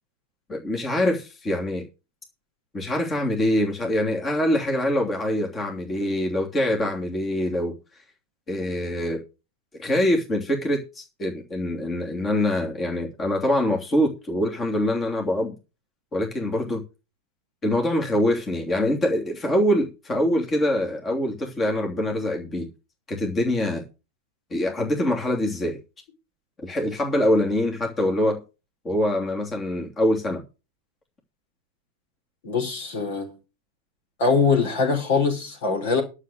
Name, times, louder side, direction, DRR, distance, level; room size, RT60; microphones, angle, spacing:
voice 1, 0.5-1.8 2.7-7.8 8.5-9.2 9.8-15.6 16.1-16.8 17.6-22.7 23.1-23.8 24.5-25.8 26.6-28.4 28.8-30.4, left 1 dB, 20° left, 3.0 m, -24 dB
voice 2, 32.4-33.4 34.2-36.0, left 5 dB, 55° left, 4.4 m, -23 dB
11.5 x 6.9 x 6.4 m
figure-of-eight pair, 90°, 0 cm